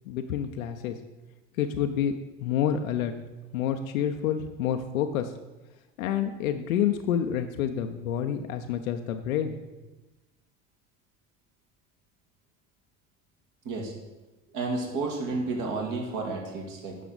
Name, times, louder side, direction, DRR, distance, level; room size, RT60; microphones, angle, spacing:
voice 1, 0.1-1.0 1.6-3.1 3.5-5.3 6.0-9.6, left 9 dB, 80° left, 6 dB, 0.6 m, -28 dB
voice 2, 14.5-17.1, right 3 dB, 50° right, 0 dB, 2.1 m, -31 dB
9.3 x 5.9 x 3.9 m, 1.1 s
hypercardioid pair, 75°, 41 cm